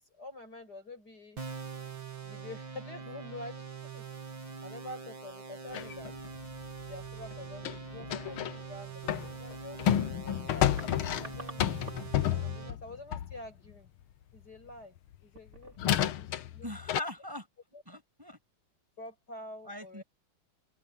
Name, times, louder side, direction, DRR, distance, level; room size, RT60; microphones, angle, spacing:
voice 1, 0.0-1.4 2.2-4.3 4.6-6.1 6.9-11.8 12.4-13.9 14.3-16.7 17.7-17.8 19.0-20.0, left 2 dB, 50° left, 7.3 m, -47 dB
sound 1, 1.4-12.7, right 6 dB, 65° right, 4.1 m, -44 dB
sound 2, 5.7-8.6 9.0-13.5 15.1-15.2 15.8-17.0, left 11 dB, 85° left, 1.8 m, -31 dB
sound 3, 7.0-7.2 10.2-10.3 10.5-12.3 12.5-12.7 13.4-13.7 14.2-14.4 15.2-16.0 16.3-16.4, right 3 dB, 35° right, 3.8 m, -50 dB
voice 2, 16.6-17.5 17.9-18.4 19.7-20.0, left 1 dB, 10° right, 6.9 m, -40 dB
open air
omnidirectional pair, 2.3 m